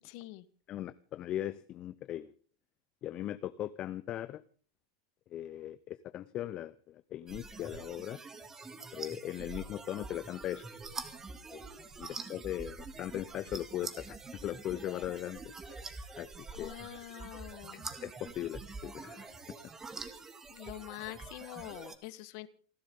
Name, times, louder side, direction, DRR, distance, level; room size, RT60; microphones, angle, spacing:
voice 1, 0.1-0.4 12.0-12.2 16.5-17.8 20.5-22.5, left 18 dB, 60° left, 15 dB, 1.3 m, -45 dB
voice 2, 0.7-2.3 3.0-4.4 5.3-8.2 8.9-10.6 11.5-11.6 12.0-15.4 15.7-15.8 16.2-16.3 16.6-16.7 17.7-19.3, left 12 dB, 40° left, 14 dB, 0.8 m, -39 dB
sound 1, 7.3-22.0, right 4 dB, 20° right, 2.4 m, -46 dB
28.5 x 12.0 x 3.8 m, 0.43 s
hypercardioid pair, 110°, 2 cm